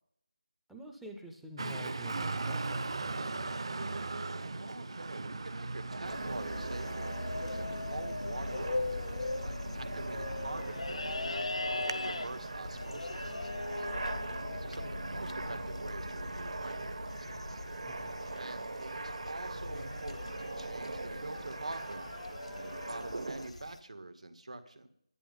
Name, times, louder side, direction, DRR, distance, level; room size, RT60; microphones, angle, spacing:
voice 1, 0.7-3.6 17.8-18.1, equal, ahead, 2 dB, 0.4 m, -48 dB
Traffic noise roadway noise, 1.6-13.3, right 3 dB, 50° right, 0.7 m, -40 dB
voice 2, 4.5-11.4 11.7-13.9 14.5-17.6 18.4-22.1 22.5-24.9, right 2 dB, 85° right, 7 dB, 1.9 m, -46 dB
sound 1, 5.9-23.5, right 3 dB, 65° right, 1.3 m, -42 dB
sound 2, 6.0-23.8, left 2 dB, 80° left, 0.9 m, -40 dB
11.0 x 10.5 x 5.4 m, 0.70 s
figure-of-eight pair, 175°, 3 cm